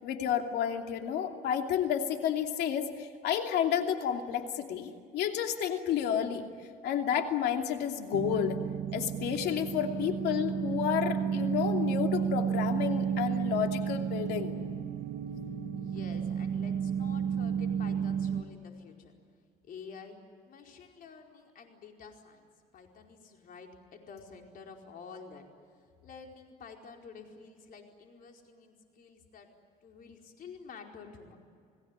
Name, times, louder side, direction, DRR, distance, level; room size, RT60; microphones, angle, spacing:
voice 1, 0.0-6.4 6.8-8.6 8.9-14.5, left 9 dB, 75° left, 4 dB, 2.8 m, -31 dB
sound 1, 8.1-18.4, right 7 dB, 60° right, 1.2 m, -32 dB
voice 2, 15.8-19.1 19.7-20.2 20.5-22.5 22.7-25.4 26.0-29.5 29.8-31.4, left 5 dB, 55° left, 2 dB, 4.7 m, -49 dB
29.5 x 18.5 x 9.8 m, 2.2 s
cardioid pair, 110°, 17 cm